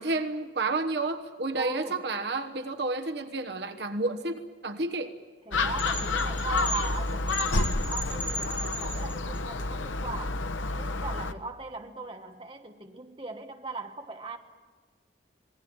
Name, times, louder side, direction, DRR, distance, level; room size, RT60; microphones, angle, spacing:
voice 1, 0.0-5.1, right 2 dB, 60° right, 1.2 m, -31 dB
voice 2, 1.5-2.0 5.5-14.4, right 3 dB, 30° right, 1.3 m, -39 dB
Gull seagull, 5.5-11.3, left 3 dB, 90° left, 1.0 m, -29 dB
sound 1, 5.8-9.4, equal, 10° left, 1.4 m, -36 dB
26.5 x 19.0 x 8.9 m
head